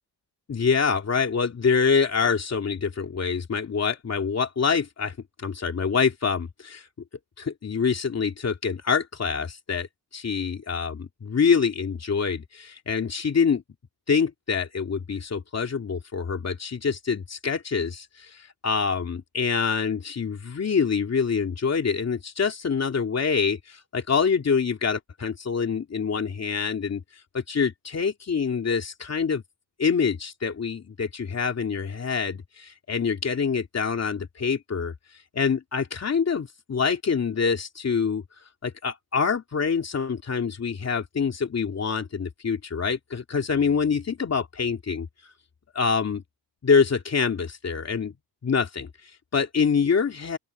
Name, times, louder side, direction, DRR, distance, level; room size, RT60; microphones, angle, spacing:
voice 1, 0.5-6.9 7.4-9.9 10.1-13.6 14.1-27.0 27.3-29.4 29.8-34.9 35.3-38.2 38.6-45.1 45.7-46.2 46.6-48.1 48.4-50.4, left 5 dB, 40° left, 2.8 m, -25 dB
open air
cardioid pair, 115°, 39 cm